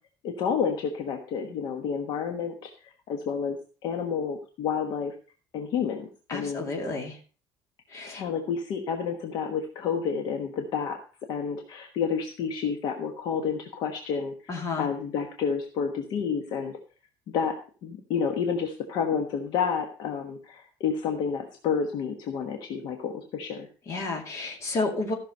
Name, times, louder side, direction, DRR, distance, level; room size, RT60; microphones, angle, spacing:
voice 1, 0.2-2.7 3.1-3.6 3.8-5.1 5.5-6.7 8.1-11.0 11.3-14.5 14.8-16.8 17.3-17.5 17.8-23.7, left 6 dB, 55° left, 4 dB, 1.3 m, -30 dB
voice 2, 6.3-7.2 7.9-8.2 14.5-14.9 23.9-25.1, left 3 dB, 35° left, 3 dB, 2.4 m, -31 dB
14.5 x 6.1 x 5.4 m, 0.39 s
cardioid pair, 175°, 9 cm